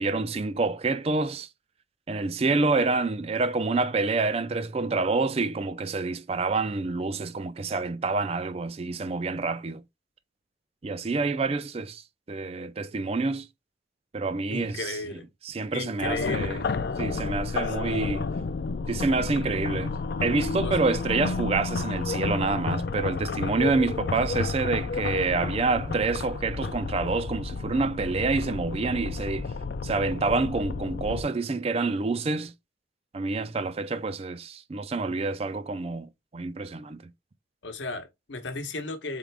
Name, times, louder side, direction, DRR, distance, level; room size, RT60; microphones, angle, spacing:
voice 1, 0.0-1.5 2.1-9.8 10.8-12.0 12.3-13.5 14.1-15.0 15.4-16.6 17.0-18.3 18.9-20.0 20.2-29.5 29.8-32.5 33.1-37.0, right 3 dB, 30° right, 0.4 m, -27 dB
voice 2, 14.5-15.3 15.7-16.6 20.6-20.7 37.6-39.2, left 3 dB, 75° left, 0.9 m, -34 dB
sound 1, 16.0-31.2, left 4 dB, 55° left, 0.4 m, -31 dB
4.0 x 3.7 x 3.3 m
head